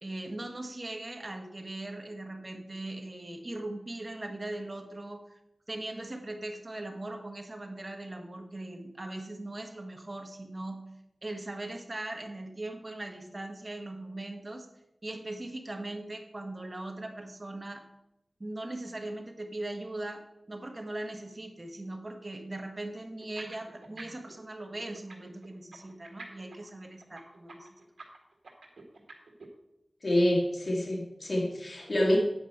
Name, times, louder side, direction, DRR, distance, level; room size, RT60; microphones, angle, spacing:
voice 1, 0.0-5.4 5.7-10.8 11.2-14.7 15.0-17.8 18.4-27.7, right 2 dB, 40° right, 5 dB, 1.4 m, -40 dB
sound 1, 23.2-24.3 24.6-29.5, right 3 dB, 85° right, 1.9 m, -47 dB
voice 2, 30.0-32.2, left 1 dB, 65° left, -2 dB, 2.3 m, -27 dB
9.0 x 5.1 x 7.9 m, 0.89 s
cardioid pair, 45°, 0 cm